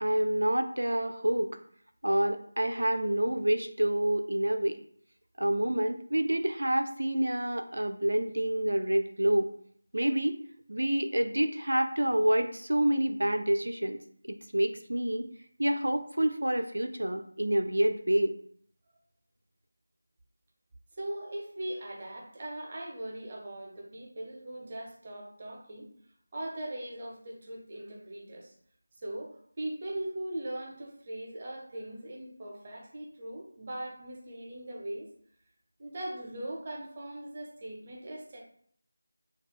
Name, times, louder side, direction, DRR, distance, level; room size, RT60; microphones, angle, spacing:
voice 1, 0.0-1.6 2.0-4.8 5.4-9.5 9.9-10.4 10.7-14.0 14.3-15.3 15.6-18.3, right 1 dB, 80° right, 7 dB, 0.3 m, -28 dB
voice 2, 20.9-25.9 26.3-28.5 29.0-35.1 35.8-38.4, right 1 dB, 30° right, -1 dB, 0.5 m, -40 dB
2.2 x 2.0 x 3.4 m, 0.62 s
figure-of-eight pair, 170°, 0 cm